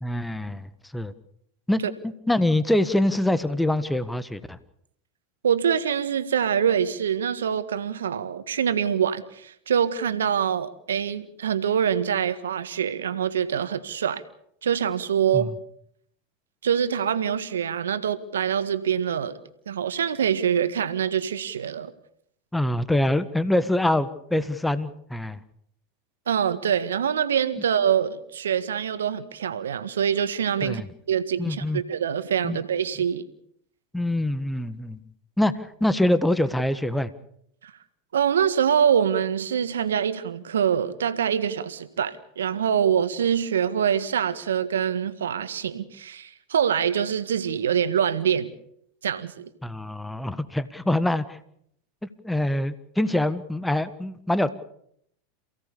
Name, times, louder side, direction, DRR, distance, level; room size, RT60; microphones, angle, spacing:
voice 1, 0.0-1.1 1.7-1.8 2.3-4.6 15.3-15.5 22.5-25.4 30.6-30.8 31.4-31.8 32.4-32.6 33.9-35.0 35.4-37.1 49.6-51.4 52.2-54.5, left 1 dB, 5° left, 14 dB, 1.5 m, -24 dB
voice 2, 5.4-14.2 14.6-15.5 16.6-19.4 19.7-21.9 26.3-30.8 31.1-33.2 37.6-37.7 38.1-48.5 49.0-49.5, right 8 dB, 80° right, 12 dB, 1.7 m, -25 dB
28.0 x 17.0 x 7.0 m, 0.70 s
hypercardioid pair, 90°, 0 cm